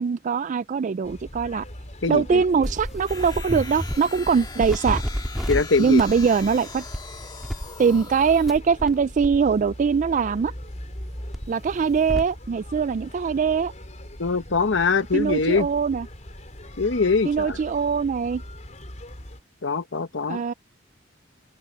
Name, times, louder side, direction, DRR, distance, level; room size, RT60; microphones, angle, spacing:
voice 1, 0.0-1.6 2.1-5.0 5.8-6.8 7.8-10.5 11.5-13.7 15.1-16.1 17.2-18.4 20.3-20.5, right 6 dB, 45° right, 0.3 m, -22 dB
sound 1, 1.0-19.4, left 1 dB, 40° left, 5.1 m, -41 dB
voice 2, 2.0-2.4 5.5-6.0 14.2-15.7 16.8-17.6 19.6-20.5, left 4 dB, 80° left, 1.1 m, -23 dB
sound 2, 2.6-4.0 4.3-5.6 6.0-6.3 6.8-7.0 7.4-9.0 9.2-12.3, equal, ahead, 1.6 m, -32 dB
sound 3, 3.1-8.6, left 4 dB, 25° left, 1.8 m, -41 dB
open air
head